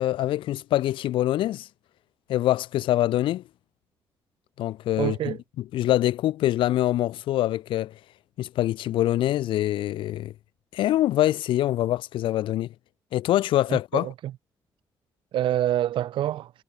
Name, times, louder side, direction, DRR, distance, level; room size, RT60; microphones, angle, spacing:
voice 1, 0.0-1.7 2.3-3.4 4.6-5.4 5.7-7.9 8.4-10.3 10.7-12.7 13.1-14.1, left 14 dB, 80° left, 7.4 m, -24 dB
voice 2, 5.0-5.4 13.7-14.3 15.3-16.5, right 12 dB, 75° right, 4.4 m, -26 dB
supercardioid pair, 60°, 9 cm